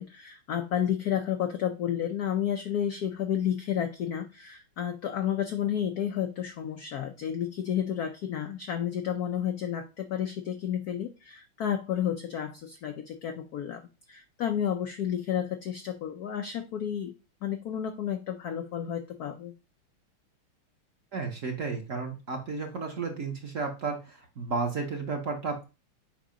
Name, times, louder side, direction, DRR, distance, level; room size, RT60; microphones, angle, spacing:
voice 1, 0.0-13.8 14.1-17.1 17.4-19.5, left 9 dB, 85° left, 7 dB, 0.8 m, -31 dB
voice 2, 21.1-25.6, right 4 dB, 50° right, 3 dB, 1.1 m, -33 dB
7.4 x 2.8 x 5.0 m, 0.29 s
omnidirectional pair, 2.4 m